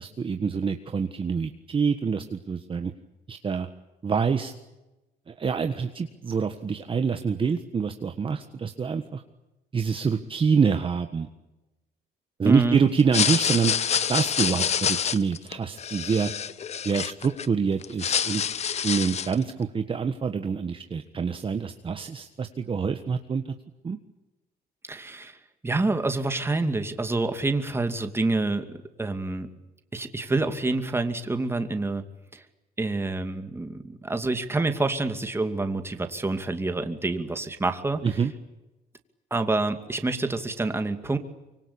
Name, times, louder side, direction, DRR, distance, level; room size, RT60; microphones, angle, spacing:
voice 1, 0.0-2.9 3.3-3.7 4.0-4.5 5.3-9.2 9.7-11.3 12.4-13.7 14.1-16.3 16.8-18.4 18.8-23.5 23.8-24.0 38.0-38.3, right 6 dB, 30° right, 6 dB, 1.5 m, -26 dB
voice 2, 12.4-12.8 24.9-25.4 25.6-29.5 29.9-32.0 32.3-32.4 32.8-38.0 39.3-41.2, right 2 dB, 15° right, 7 dB, 2.5 m, -27 dB
sound 1, 13.0-17.5 17.8-19.4, left 8 dB, 40° left, 1.0 m, -27 dB
25.0 x 24.5 x 8.8 m, 1.0 s
cardioid pair, 110°, 17 cm